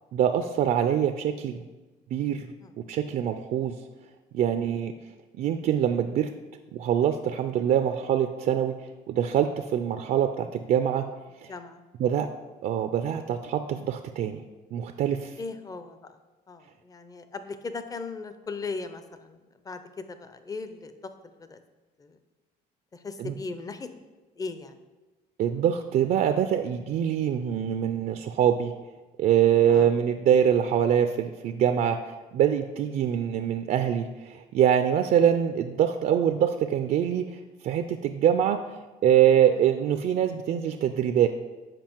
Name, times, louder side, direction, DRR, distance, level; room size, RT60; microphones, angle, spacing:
voice 1, 0.1-1.6 2.1-2.5 2.9-3.7 4.3-4.9 5.4-6.3 6.7-11.0 11.4-11.5 12.0-12.3 12.6-14.4 14.7-15.3 23.2-23.3 25.4-28.7 29.2-38.6 39.0-41.3, right 9 dB, 55° right, 7 dB, 0.4 m, -24 dB
voice 2, 11.5-11.8 15.4-16.2 16.5-20.9 21.3-21.6 22.0-22.2 22.9-23.9 24.4-24.8 29.7-29.9 39.5-39.6, left 4 dB, 20° left, 9 dB, 0.6 m, -38 dB
7.6 x 5.0 x 4.5 m, 1.2 s
cardioid pair, 110°, 17 cm